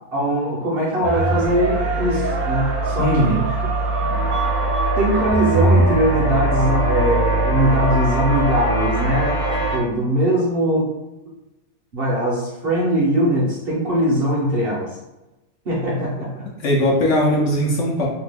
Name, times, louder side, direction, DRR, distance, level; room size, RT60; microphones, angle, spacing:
voice 1, 0.1-3.4 4.3-4.5 4.9-9.4 9.7-10.9 11.9-15.0 15.7-16.5, right 1 dB, 55° right, -5 dB, 0.7 m, -21 dB
sound 1, 1.0-9.8, right 3 dB, 75° right, 1.0 m, -21 dB
voice 2, 3.0-3.4 16.6-18.1, equal, 65° left, -2 dB, 0.9 m, -19 dB
sound 2, 4.1-9.8, left 2 dB, 90° left, 1.2 m, -27 dB
2.8 x 2.2 x 3.4 m, 1.0 s
omnidirectional pair, 1.5 m